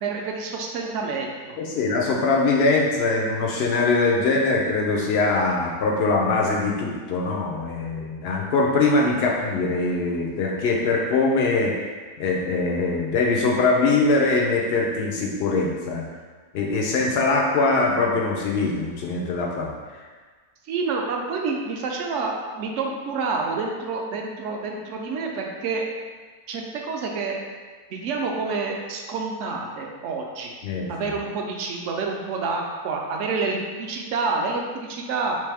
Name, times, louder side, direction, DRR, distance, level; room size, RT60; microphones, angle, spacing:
voice 1, 0.0-1.5 20.7-25.8 26.5-27.4 27.9-30.5 30.9-35.4, right 4 dB, 70° right, 0 dB, 0.7 m, -28 dB
voice 2, 1.6-11.7 12.2-16.1 16.5-19.7 30.6-31.1, left 3 dB, 85° left, -1 dB, 0.5 m, -22 dB
3.3 x 3.1 x 3.4 m, 1.4 s
omnidirectional pair, 1.6 m